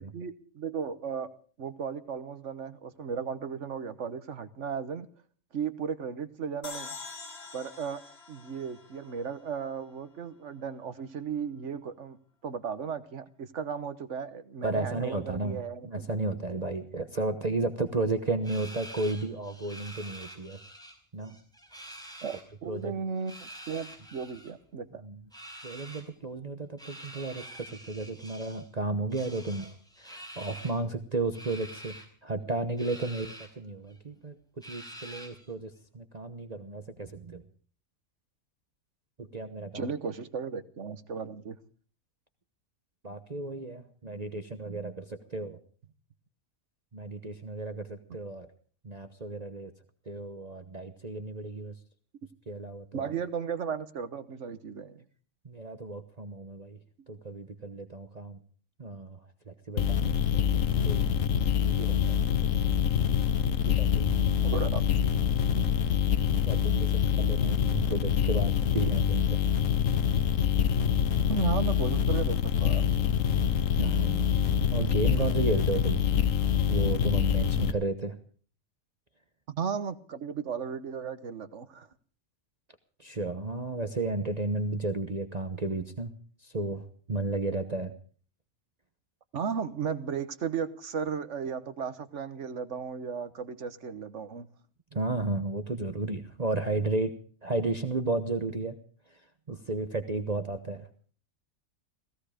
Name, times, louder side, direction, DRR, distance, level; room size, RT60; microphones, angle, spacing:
voice 1, 0.0-5.1 5.5-6.9 7.5-16.6 22.2-25.0 39.7-41.6 52.9-55.0 64.4-64.8 71.3-72.9 79.5-81.9 89.3-94.5, right 6 dB, 60° right, 12 dB, 1.4 m, -35 dB
sound 1, 6.6-9.9, left 4 dB, 50° left, 2.0 m, -45 dB
voice 2, 14.6-20.6 21.1-21.3 22.7-22.9 25.0-25.2 25.6-29.7 30.0-37.4 39.2-39.9 43.0-45.6 46.9-48.5 48.8-49.7 50.1-51.7 52.5-53.1 55.4-56.8 57.1-58.4 58.8-59.2 59.5-61.1 61.6-62.6 63.6-64.6 65.5-65.8 66.5-69.4 73.8-74.3 74.7-76.0 76.7-78.1 83.0-86.1 86.4-87.9 94.9-97.1 97.4-98.8 99.5-100.9, right 3 dB, 30° right, 8 dB, 1.1 m, -33 dB
sound 2, 18.4-20.9 21.2-22.4 23.2-24.5 25.3-26.1 26.8-28.7 29.1-30.8 31.3-32.1 32.8-33.5 33.9-34.0 34.6-35.5, right 1 dB, 5° left, 4.9 m, -46 dB
sound 3, 59.8-77.7, left 8 dB, 75° left, 1.3 m, -25 dB
17.0 x 16.0 x 5.0 m, 0.43 s
omnidirectional pair, 1.4 m